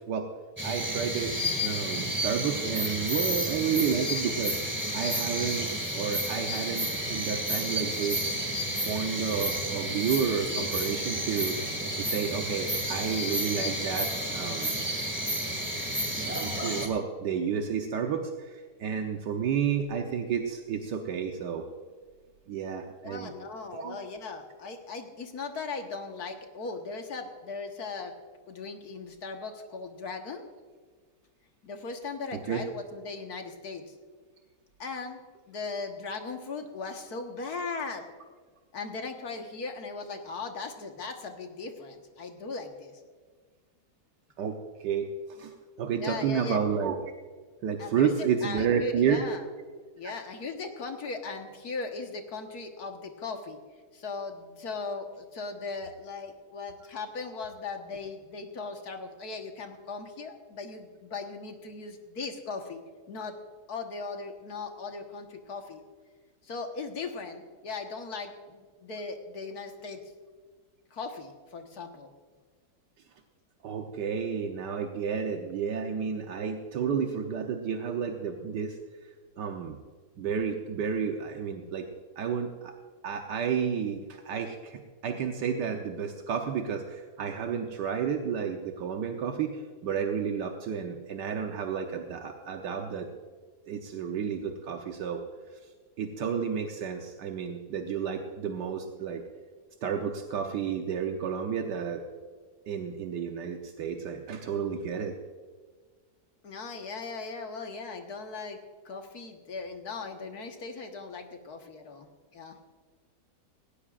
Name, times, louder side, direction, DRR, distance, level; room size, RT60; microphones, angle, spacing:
sound 1, 0.6-16.9, equal, 5° right, 1.9 m, -31 dB
voice 1, 0.6-4.6 4.9-8.2 8.8-11.6 12.0-14.7 16.1-21.7 22.5-23.3 23.7-24.0 32.5-32.6 44.4-47.0 47.6-49.2 50.0-50.1 73.6-78.8 79.4-79.8 80.2-81.9 82.2-82.7 83.0-93.1 93.7-95.2 96.0-99.2 99.8-102.0 102.7-105.1, right 7 dB, 80° right, 3 dB, 1.5 m, -31 dB
voice 2, 23.0-28.1 28.5-30.5 31.6-34.0 34.8-35.2 35.5-38.1 38.7-43.0 45.9-46.6 47.8-49.5 50.0-53.6 53.9-62.8 63.1-63.4 63.7-65.8 66.4-70.0 70.9-72.1 106.4-108.6 108.9-112.1 112.3-112.6, left 4 dB, 60° left, 4 dB, 1.9 m, -38 dB
18.0 x 17.5 x 2.5 m, 1.5 s
omnidirectional pair, 1.8 m